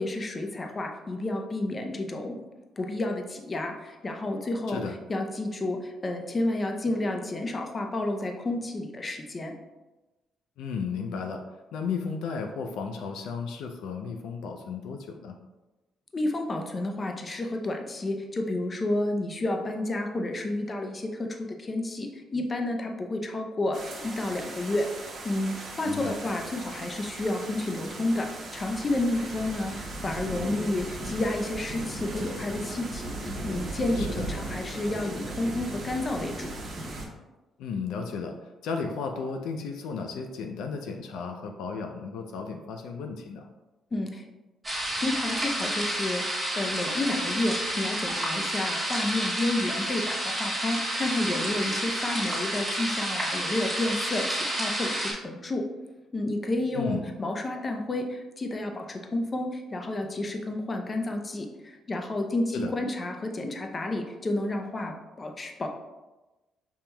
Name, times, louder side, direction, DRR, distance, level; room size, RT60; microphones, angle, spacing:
voice 1, 0.0-2.4 2.8-4.8 5.1-9.5 16.1-24.9 25.2-36.6 43.9-44.3 45.0-55.6 56.1-65.7, left 2 dB, 30° left, 3 dB, 0.5 m, -30 dB
voice 2, 10.6-11.4 11.7-15.4 25.8-26.2 34.0-34.3 37.6-43.5 56.7-57.1 62.5-62.7, left 5 dB, 85° left, 4 dB, 0.4 m, -34 dB
sound 1, 23.7-37.1, right 2 dB, 50° right, 0.9 m, -37 dB
sound 2, 44.6-55.1, right 1 dB, 15° right, 1.5 m, -30 dB
5.3 x 2.9 x 2.2 m, 1.1 s
cardioid pair, 90°, 0 cm